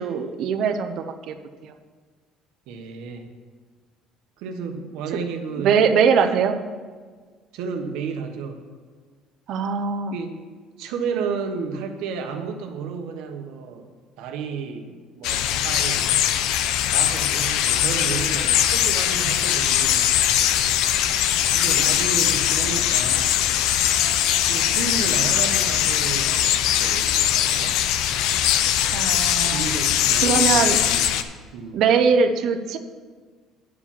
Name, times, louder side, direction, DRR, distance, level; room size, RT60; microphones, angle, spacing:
voice 1, 0.0-1.4 1.6-1.7 5.6-6.6 9.5-10.1 28.9-29.6 30.2-30.8 31.7-32.8, right 6 dB, 55° right, 7 dB, 0.6 m, -21 dB
voice 2, 2.7-3.3 4.4-5.8 6.3-6.4 7.5-8.6 10.1-10.4 10.8-13.9 14.2-16.4 16.9-20.0 21.5-23.4 24.4-27.8 29.5-31.1 31.5-31.8, right 5 dB, 75° right, 6 dB, 1.1 m, -32 dB
Birds nests in a french town, 15.2-31.2, left 10 dB, 70° left, 0.5 m, -21 dB
9.6 x 4.9 x 7.2 m, 1.5 s
cardioid pair, 160°, 0 cm